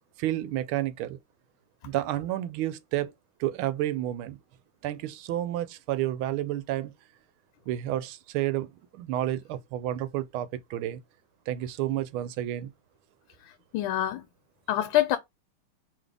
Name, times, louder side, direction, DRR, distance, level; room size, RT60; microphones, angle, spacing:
voice 1, 0.2-1.2 1.8-3.1 3.4-4.4 4.8-6.9 7.7-11.0 11.5-12.7, right 13 dB, 85° right, 1.5 m, -30 dB
voice 2, 13.7-14.2 14.7-15.2, left 13 dB, 80° left, 1.4 m, -25 dB
3.9 x 3.4 x 3.4 m
omnidirectional pair, 2.2 m